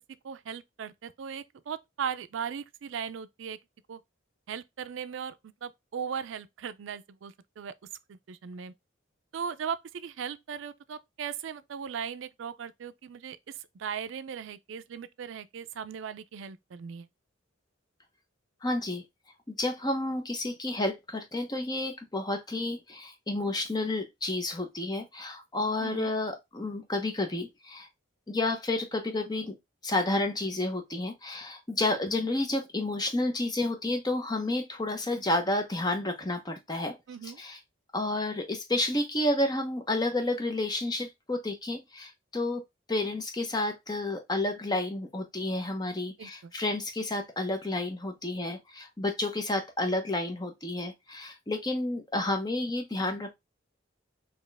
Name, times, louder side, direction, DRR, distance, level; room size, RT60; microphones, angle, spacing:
voice 1, 0.2-3.6 3.9-4.0 4.5-7.7 8.1-8.7 9.3-17.1 25.8-26.1 37.1-37.4 46.2-46.5, right 7 dB, 70° right, 0.4 m, -38 dB
voice 2, 18.6-19.0 19.5-27.9 28.3-29.5 29.8-36.9 37.2-37.6 37.9-42.6 42.9-53.3, left 2 dB, 20° left, 0.8 m, -30 dB
4.4 x 2.9 x 3.3 m
head